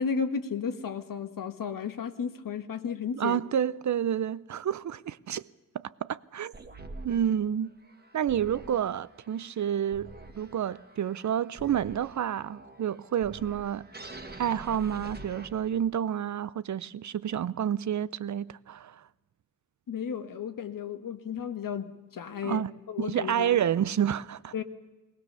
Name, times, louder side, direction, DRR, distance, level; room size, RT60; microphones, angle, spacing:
voice 1, 0.0-3.4 19.9-22.6 22.9-23.6 24.5-24.6, left 6 dB, 85° left, 1.5 m, -33 dB
voice 2, 3.2-5.4 5.7-6.5 7.0-7.7 8.1-10.1 10.4-13.8 14.4-19.0 22.4-22.7 23.0-24.5, right 9 dB, 60° right, 0.6 m, -29 dB
sound 1, 6.5-16.0, right 2 dB, 30° right, 1.5 m, -47 dB
21.0 x 18.5 x 6.8 m
wide cardioid pair, 100°, 32 cm